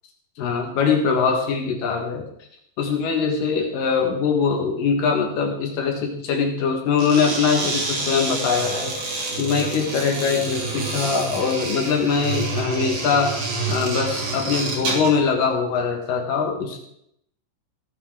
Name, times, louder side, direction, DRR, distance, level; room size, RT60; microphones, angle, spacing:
voice 1, 0.4-2.2 2.8-8.9 9.4-13.3 13.7-16.8, left 5 dB, 70° left, 2 dB, 3.2 m, -22 dB
sound 1, 6.9-15.2, right 3 dB, 80° right, 4.7 m, -28 dB
16.5 x 9.7 x 3.8 m, 0.75 s
omnidirectional pair, 4.1 m